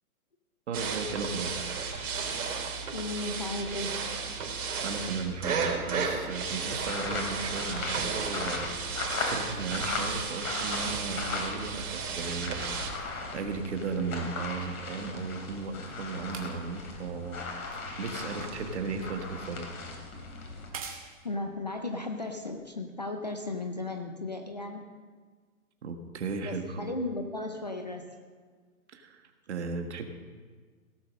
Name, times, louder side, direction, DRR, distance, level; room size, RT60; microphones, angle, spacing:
voice 1, 0.7-1.6 4.8-8.7 9.2-17.4 18.0-19.7 25.8-26.9 28.9-30.0, right 4 dB, 50° right, 6 dB, 1.4 m, -36 dB
sound 1, 0.7-12.9, right 5 dB, 75° right, 3.9 m, -34 dB
voice 2, 2.9-4.1 21.2-24.9 26.4-28.1, left 2 dB, 30° left, 4 dB, 0.5 m, -35 dB
sound 2, 6.8-11.8 12.1-20.7, left 3 dB, 70° left, 3.2 m, -37 dB
sound 3, 15.4-23.0 23.9-24.0, right 6 dB, 25° right, 0.9 m, -49 dB
17.0 x 7.1 x 6.4 m, 1.5 s
hypercardioid pair, 170°, 44 cm